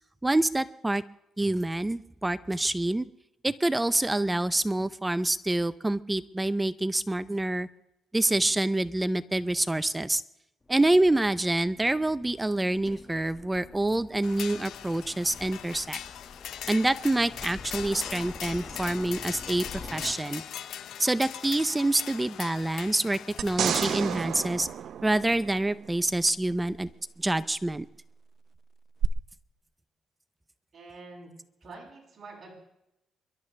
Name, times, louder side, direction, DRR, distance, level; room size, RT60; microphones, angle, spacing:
voice 1, 0.2-1.0 1.4-3.1 3.4-7.7 8.1-10.2 10.7-16.0 16.7-20.4 21.0-24.7 25.0-26.9 27.2-27.9, right 2 dB, 15° right, 14 dB, 0.5 m, -26 dB
Aircraft, 10.6-20.1, left 3 dB, 25° left, 1.7 m, -47 dB
sound 1, 14.2-24.2, left 10 dB, 75° left, 0.8 m, -40 dB
sound 2, 23.4-25.9 29.0-29.1, right 9 dB, 65° right, 0.6 m, -30 dB
voice 2, 30.7-31.3 31.6-32.5, right 3 dB, 40° right, -3 dB, 7.3 m, -46 dB
28.0 x 12.0 x 3.3 m, 0.87 s
cardioid pair, 90°, 0 cm